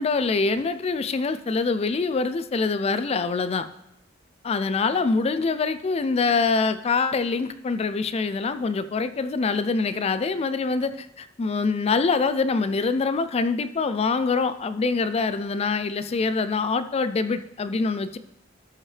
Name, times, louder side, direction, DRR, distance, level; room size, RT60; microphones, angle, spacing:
voice 1, 0.0-3.7 4.4-18.2, left 4 dB, 30° left, 12 dB, 0.3 m, -24 dB
13.0 x 5.7 x 3.3 m, 0.82 s
head